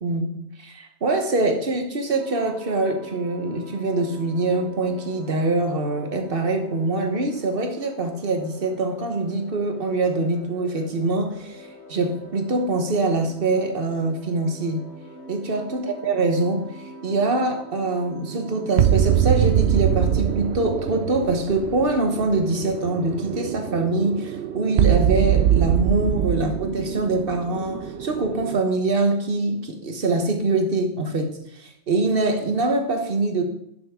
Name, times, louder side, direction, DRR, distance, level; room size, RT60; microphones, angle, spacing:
voice 1, 0.0-14.8 15.3-33.4, right 2 dB, 55° right, 5 dB, 1.4 m, -24 dB
sound 1, 2.2-20.5, left 1 dB, 60° left, 3.2 m, -45 dB
sound 2, 18.1-28.6, right 10 dB, 70° right, 0.8 m, -23 dB
11.5 x 7.0 x 3.7 m, 0.77 s
omnidirectional pair, 1.2 m